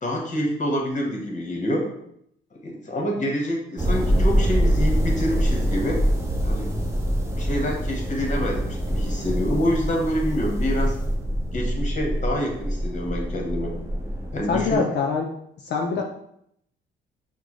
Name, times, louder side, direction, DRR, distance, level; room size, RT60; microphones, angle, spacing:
voice 1, 0.0-1.9 2.6-6.0 6.4-6.7 7.3-11.0 11.5-13.8 14.3-14.8, equal, 40° left, 1 dB, 1.2 m, -27 dB
sound 1, 3.8-14.8, equal, 15° right, 0.8 m, -25 dB
voice 2, 14.5-15.3 15.6-16.0, left 5 dB, 60° left, 1 dB, 0.5 m, -24 dB
6.0 x 2.2 x 3.1 m, 0.72 s
cardioid pair, 90°, 20 cm